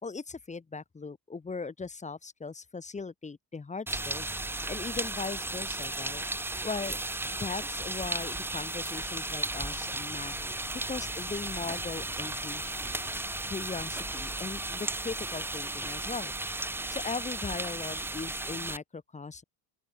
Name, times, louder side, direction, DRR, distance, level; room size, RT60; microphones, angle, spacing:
voice 1, 0.0-4.3 4.7-6.2 6.6-7.0 7.3-10.6 10.9-13.0 13.5-16.3 16.9-19.4, left 4 dB, 15° left, 1.0 m, -39 dB
sound 1, 3.9-18.8, right 2 dB, 5° right, 0.6 m, -35 dB
sound 2, 9.4-14.7, left 8 dB, 40° left, 3.7 m, -54 dB
open air
cardioid pair, 115°, 46 cm